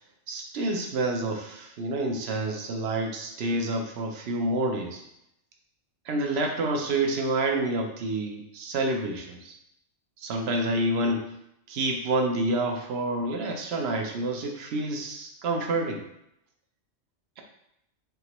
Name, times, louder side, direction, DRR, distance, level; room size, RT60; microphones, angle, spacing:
voice 1, 0.3-5.0 6.1-9.5 10.2-11.3 11.7-16.0, right 2 dB, 65° right, 3 dB, 0.9 m, -28 dB
5.1 x 2.9 x 3.0 m, 0.79 s
omnidirectional pair, 1.2 m